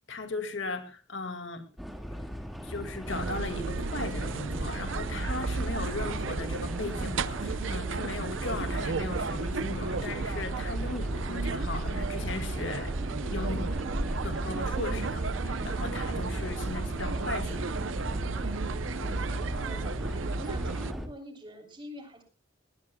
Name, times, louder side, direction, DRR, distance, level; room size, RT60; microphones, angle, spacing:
voice 1, 0.1-1.6 2.6-12.9 13.2-13.7 14.2-17.7, left 3 dB, 75° left, 8 dB, 2.1 m, -37 dB
sound 1, 1.8-21.1, equal, ahead, 1.9 m, -38 dB
sound 2, 3.1-20.9, right 4 dB, 80° right, 0.6 m, -33 dB
voice 2, 19.6-22.2, equal, 25° right, 3 dB, 3.3 m, -45 dB
19.5 x 18.5 x 2.3 m, 0.33 s
head